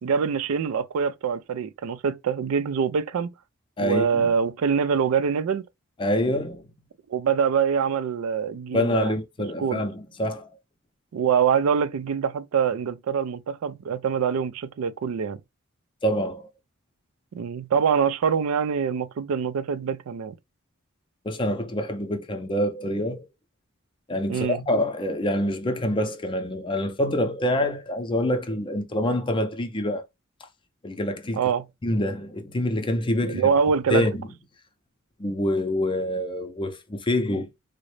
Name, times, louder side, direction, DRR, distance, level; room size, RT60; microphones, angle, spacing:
voice 1, 0.0-3.3 3.8-5.7 7.1-9.2 9.6-9.9 11.1-15.4 17.3-20.3 24.3-24.6 31.4-31.6 33.3-34.1, right 6 dB, 90° right, 0.4 m, -24 dB
voice 2, 3.8-4.3 6.0-6.7 8.7-10.5 16.0-16.5 21.2-23.3 24.1-30.0 30.8-31.4 31.8-33.5 33.9-34.3 35.2-37.5, left 1 dB, 25° left, 0.5 m, -26 dB
3.7 x 2.1 x 3.1 m
head